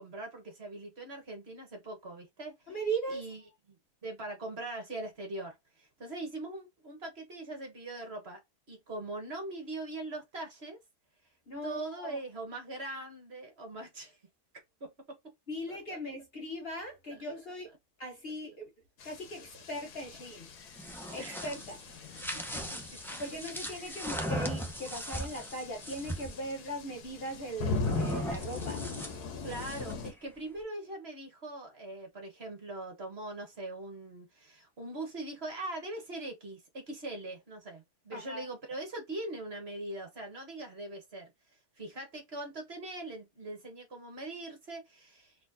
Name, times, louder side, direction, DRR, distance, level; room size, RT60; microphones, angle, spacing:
voice 1, 0.0-2.5 3.1-3.4 3.7-8.4 8.7-10.8 11.6-14.2 14.8-14.9 15.7-16.0 19.4-19.5 21.2-21.5 22.3-22.6 29.4-41.3 41.8-45.5, right 2 dB, 45° right, 1.5 m, -41 dB
voice 2, 2.7-3.2 11.5-12.2 15.5-17.7 18.0-18.7 19.0-20.5 21.1-21.8 23.2-28.8 38.1-38.5, right 1 dB, 45° left, 1.2 m, -39 dB
sound 1, 19.0-30.1, left 3 dB, 85° left, 1.5 m, -40 dB
sound 2, 20.6-26.4 27.8-30.1, equal, 5° left, 0.3 m, -38 dB
4.1 x 3.3 x 2.6 m
omnidirectional pair, 1.6 m